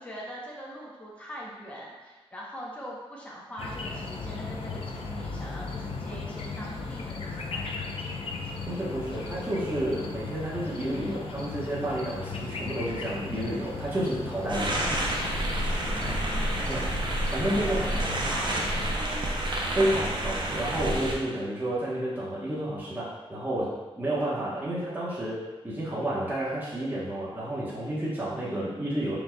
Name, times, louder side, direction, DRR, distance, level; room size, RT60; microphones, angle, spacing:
voice 1, 0.0-7.7 15.8-16.8 17.5-18.8, equal, 15° left, -5 dB, 0.8 m, -42 dB
sound 1, 3.6-18.9, left 4 dB, 65° left, 0.5 m, -36 dB
voice 2, 8.7-14.7 16.7-16.9 17.3-17.9 19.7-29.2, right 1 dB, 20° right, -8 dB, 1.0 m, -30 dB
sound 2, 14.5-21.1, right 1 dB, 50° right, 0.6 m, -29 dB
4.6 x 4.0 x 2.2 m, 1.2 s
wide cardioid pair, 135°, 10 cm